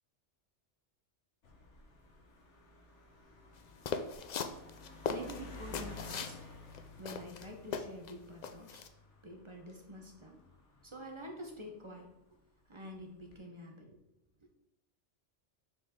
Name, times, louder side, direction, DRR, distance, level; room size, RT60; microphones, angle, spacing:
sound 1, 1.4-12.2 12.9-13.4, left 2 dB, 75° left, 1.5 m, -54 dB
sound 2, 3.8-6.4 6.7-6.8 7.0-8.1 8.4-8.9, left 6 dB, 60° left, 0.4 m, -38 dB
voice 1, 5.1-6.5 7.0-8.9 9.2-10.4 10.8-12.4 12.7-14.0 14.4-14.5, equal, 25° right, 1 dB, 0.9 m, -48 dB
6.9 x 4.8 x 3.6 m, 0.87 s
omnidirectional pair, 1.2 m